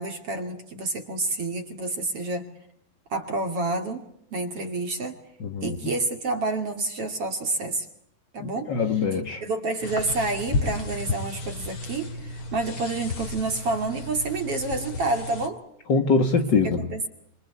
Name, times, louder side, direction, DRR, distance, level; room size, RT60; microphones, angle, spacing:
voice 1, 0.0-2.4 3.1-4.0 4.3-5.2 5.6-7.9 8.3-9.0 9.4-15.6 16.6-17.1, right 2 dB, 40° right, 3.0 m, -29 dB
voice 2, 5.4-5.8 8.4-9.4 15.9-16.9, left 4 dB, 70° left, 1.0 m, -23 dB
sound 1, 9.8-15.5, left 2 dB, 35° left, 2.8 m, -33 dB
27.0 x 25.0 x 8.3 m
omnidirectional pair, 4.8 m